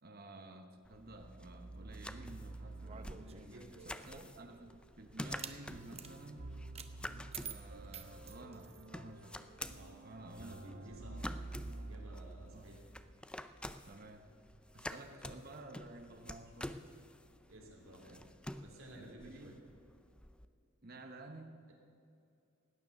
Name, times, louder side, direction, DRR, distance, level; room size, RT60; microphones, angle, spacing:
voice 1, 0.0-3.2 3.9-6.6 7.0-11.1 12.5-12.7 13.8-14.3 14.7-16.9 18.0-18.3 18.9-19.6 20.8-21.6, right 2 dB, 50° right, 6 dB, 1.0 m, -53 dB
sound 1, 0.8-20.5, left 1 dB, 5° left, 0.4 m, -50 dB
sound 2, 1.0-13.1, right 2 dB, 70° right, 1.0 m, -50 dB
sound 3, 2.8-4.4 5.2-5.6 5.9-6.1 6.7-6.9 7.3-8.9, right 7 dB, 30° right, 0.7 m, -48 dB
voice 2, 3.1-3.9 9.5-10.1 10.3-11.5 11.7-12.8 17.5-18.1 18.6-19.6, right 1 dB, 90° right, 0 dB, 3.1 m, -55 dB
17.0 x 9.8 x 6.6 m, 2.6 s
head